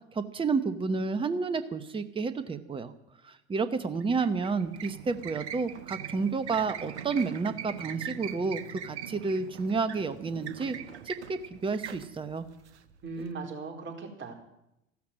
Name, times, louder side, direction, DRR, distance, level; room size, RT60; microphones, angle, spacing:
voice 1, 0.1-2.9 3.2-10.8 11.0-12.5, right 4 dB, 15° right, 12 dB, 1.1 m, -30 dB
sound 1, 4.0-13.3, right 9 dB, 70° right, 1.3 m, -42 dB
voice 2, 13.0-14.3, right 4 dB, 35° right, 2 dB, 4.4 m, -38 dB
14.5 x 13.0 x 7.7 m, 0.84 s
hypercardioid pair, 85°, 35 cm